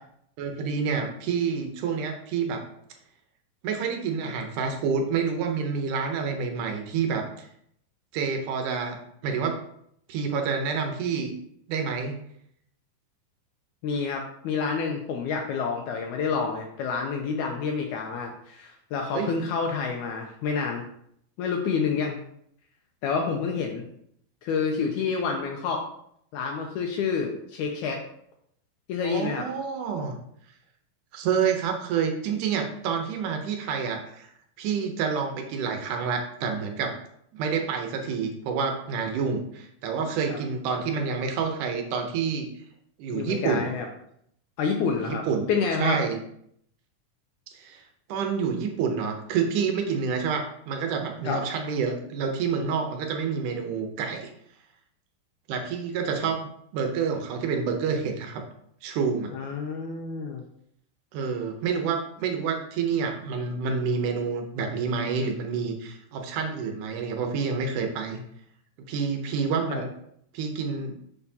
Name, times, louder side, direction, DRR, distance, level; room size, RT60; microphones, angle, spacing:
voice 1, 0.4-2.6 3.6-7.5 8.1-9.0 9.2-9.6 10.1-11.3 11.7-12.2 19.1-19.4 29.0-30.2 31.1-34.3 34.6-36.9 37.3-42.5 43.0-43.7 44.9-45.5 45.8-46.2 47.5-47.8 48.1-54.3 55.5-58.4 58.8-59.3 61.1-68.2 68.9-69.9 70.3-70.9, right 6 dB, 75° right, 4 dB, 2.2 m, -28 dB
voice 2, 13.8-20.8 21.4-22.2 23.0-23.8 24.4-25.9 26.3-28.0 28.9-29.4 40.3-40.4 43.1-43.9 44.6-46.0 51.2-51.4 59.3-60.4 69.7-69.8, left 5 dB, 80° left, 2 dB, 1.8 m, -28 dB
6.8 x 5.5 x 2.8 m, 0.71 s
omnidirectional pair, 3.9 m